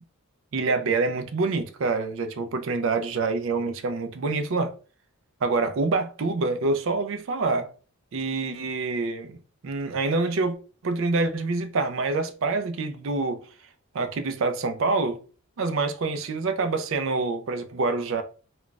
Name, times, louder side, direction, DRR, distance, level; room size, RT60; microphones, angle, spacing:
voice 1, 0.5-4.7 5.4-7.7 8.1-9.4 9.6-10.6 10.8-13.4 13.9-15.2 15.6-18.2, right 3 dB, 60° right, 0.4 m, -26 dB
2.4 x 2.2 x 3.8 m
head